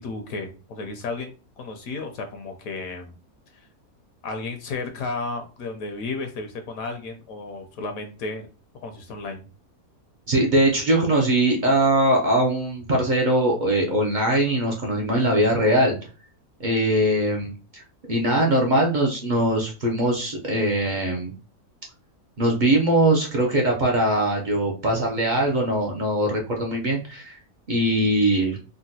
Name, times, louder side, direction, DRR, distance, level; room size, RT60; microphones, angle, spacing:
voice 1, 0.0-3.1 4.2-8.5 8.8-9.4, left 3 dB, 70° left, 5 dB, 1.0 m, -33 dB
voice 2, 10.3-16.0 16.6-21.3 22.4-27.4 27.7-28.6, right 1 dB, 65° right, 0 dB, 0.4 m, -21 dB
3.7 x 2.1 x 2.7 m, 0.34 s
omnidirectional pair, 1.6 m